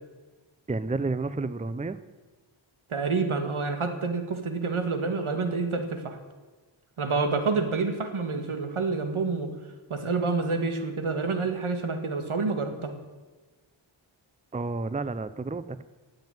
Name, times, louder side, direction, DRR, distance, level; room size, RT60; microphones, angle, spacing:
voice 1, 0.7-2.0 14.5-15.8, right 3 dB, 15° right, 14 dB, 0.6 m, -30 dB
voice 2, 2.9-6.2 7.0-9.5 9.9-12.9, right 4 dB, 80° right, 7 dB, 2.0 m, -28 dB
17.0 x 7.8 x 9.2 m, 1.3 s
wide cardioid pair, 80°, 48 cm